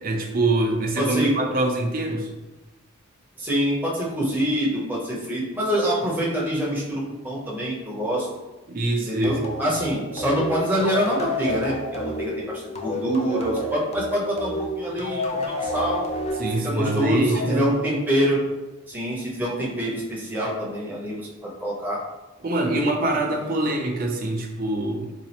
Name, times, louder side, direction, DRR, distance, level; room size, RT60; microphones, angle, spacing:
voice 1, 0.0-2.3 8.7-9.4 16.4-17.6 22.4-25.1, right 2 dB, 45° right, 1 dB, 0.5 m, -24 dB
voice 2, 1.0-1.3 3.4-8.3 9.1-16.1 16.6-18.4 18.9-22.0, equal, 10° right, -5 dB, 0.7 m, -25 dB
sound 1, 9.2-18.5, left 1 dB, 30° left, 0.4 m, -30 dB
4.0 x 2.4 x 2.9 m, 1.1 s
head